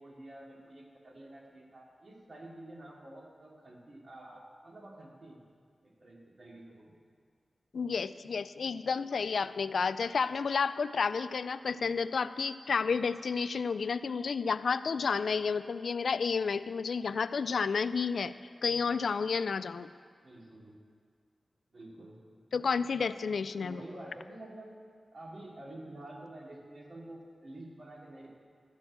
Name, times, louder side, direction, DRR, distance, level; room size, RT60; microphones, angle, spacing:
voice 1, 0.0-5.4 5.8-6.9 20.2-20.8 21.7-22.4 23.6-24.7 25.1-28.3, right 1 dB, 55° right, -3 dB, 2.7 m, -49 dB
voice 2, 7.7-18.3 18.6-19.9 22.5-23.8, left 5 dB, 80° left, 14 dB, 0.4 m, -31 dB
13.0 x 6.3 x 8.6 m, 2.1 s
wide cardioid pair, 100°, 0 cm